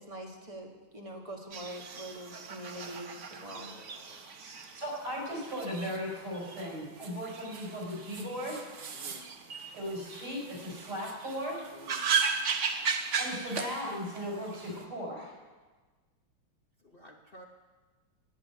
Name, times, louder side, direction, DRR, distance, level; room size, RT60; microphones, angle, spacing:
voice 1, 0.0-3.7 4.6-4.7, right 1 dB, 15° right, 0 dB, 1.6 m, -44 dB
sound 1, 1.5-14.8, right 6 dB, 50° right, 0.9 m, -37 dB
voice 2, 3.5-4.3 8.9-9.3 11.7-12.1 16.9-17.5, left 1 dB, 50° left, 2 dB, 0.7 m, -53 dB
voice 3, 4.4-8.6 9.7-11.7 13.2-15.3, equal, 85° right, -2 dB, 5.2 m, -37 dB
11.0 x 8.9 x 9.3 m, 1.3 s
omnidirectional pair, 2.3 m